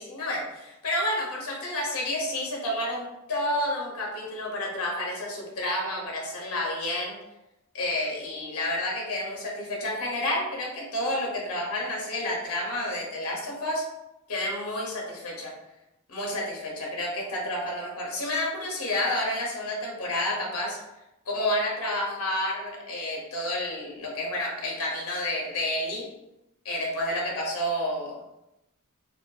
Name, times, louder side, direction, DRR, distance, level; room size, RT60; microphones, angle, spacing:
voice 1, 0.0-7.2 7.7-13.8 14.3-15.5 16.1-20.8 21.3-26.1 26.6-28.1, left 1 dB, 70° left, -1 dB, 0.7 m, -30 dB
2.6 x 2.5 x 2.3 m, 0.92 s
head